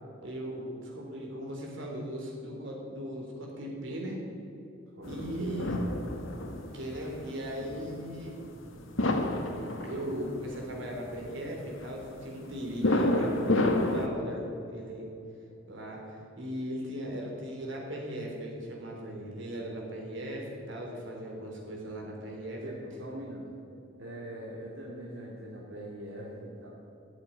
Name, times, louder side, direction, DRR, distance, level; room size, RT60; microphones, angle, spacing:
voice 1, 0.2-4.2 5.1-5.9 6.7-8.4 9.8-15.1 15.7-22.6, equal, 65° right, -1 dB, 3.7 m, -38 dB
sound 1, 5.0-14.1, left 1 dB, 80° left, 1.6 m, -30 dB
voice 2, 5.0-5.7 22.6-23.5 24.0-26.7, right 1 dB, 85° right, -4 dB, 2.4 m, -42 dB
14.5 x 8.1 x 9.3 m, 2.7 s
head